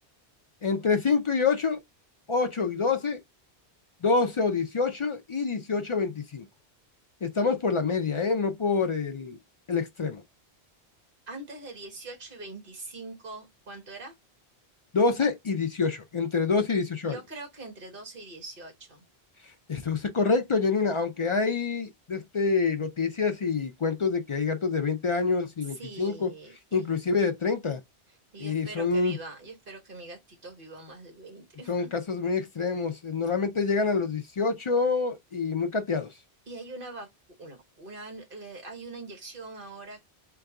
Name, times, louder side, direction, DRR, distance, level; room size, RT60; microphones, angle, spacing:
voice 1, 0.6-1.8 2.3-3.2 4.0-6.5 7.2-9.4 9.7-10.2 14.9-17.2 19.7-26.3 26.7-27.8 28.4-29.2 31.7-36.1, left 4 dB, 50° left, 0.3 m, -26 dB
voice 2, 11.3-14.1 17.0-19.0 25.7-26.9 28.3-31.9 36.5-37.1 37.4-40.0, right 2 dB, 55° right, 1.5 m, -43 dB
3.8 x 2.3 x 3.6 m
omnidirectional pair, 1.1 m